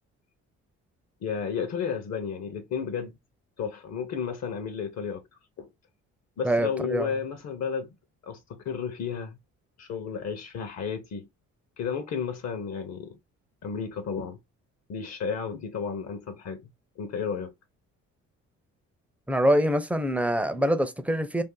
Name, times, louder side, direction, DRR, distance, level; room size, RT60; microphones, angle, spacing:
voice 1, 1.2-3.1 3.6-5.2 5.6-5.7 6.4-7.9 8.2-9.4 9.8-11.3 11.8-13.1 13.6-14.4 14.9-16.7 17.0-17.5, left 6 dB, 60° left, 0.8 m, -32 dB
voice 2, 6.4-7.1 19.3-21.4, equal, 5° right, 0.5 m, -24 dB
2.6 x 2.5 x 3.7 m
cardioid pair, 90°, 30 cm